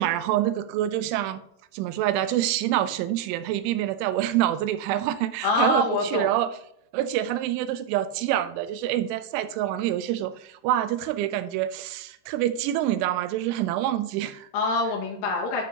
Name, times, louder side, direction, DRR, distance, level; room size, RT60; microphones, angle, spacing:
voice 1, 0.0-1.4 1.7-6.5 6.9-14.5, right 13 dB, 85° right, 12 dB, 3.1 m, -26 dB
voice 2, 5.4-6.3 14.5-15.6, left 2 dB, 85° left, 0 dB, 4.4 m, -25 dB
11.5 x 6.7 x 2.8 m, 0.72 s
omnidirectional pair, 5.4 m